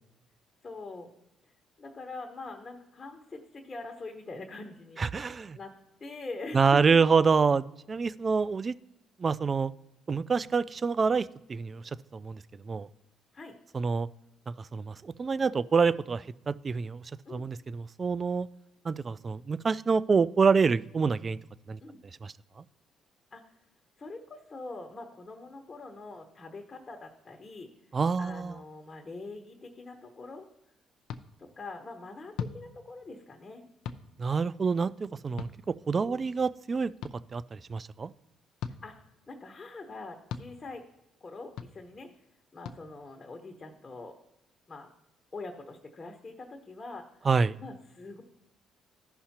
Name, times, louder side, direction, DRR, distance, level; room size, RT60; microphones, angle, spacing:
voice 1, 0.6-1.1 1.8-5.0 5.5-5.7 6.0-7.0 13.3-13.5 17.2-17.5 21.8-22.0 23.3-23.4 24.0-27.7 28.2-30.5 31.4-33.6 36.0-36.3 38.8-39.0 39.3-40.8 41.2-42.1 42.5-44.2 44.7-44.9 45.3-47.1 47.6-48.2, left 3 dB, 30° left, 3 dB, 1.1 m, -43 dB
voice 2, 5.0-5.6 6.5-8.7 9.2-9.7 10.1-11.8 12.1-12.9 13.7-14.1 14.6-17.0 17.3-18.5 18.8-21.4 21.7-21.8 22.2-22.6 27.9-28.6 34.2-36.9 37.3-38.1 47.2-47.6, right 5 dB, 35° right, 18 dB, 0.3 m, -27 dB
sound 1, 31.1-31.2 32.3-32.6 33.8-34.0 35.4-35.5 37.0-37.1 38.6-38.8 40.3-40.5 41.6-41.7 42.6-42.8, left 7 dB, 80° left, 0.5 m, -36 dB
14.0 x 5.6 x 2.9 m, 0.86 s
supercardioid pair, 75°, 0 cm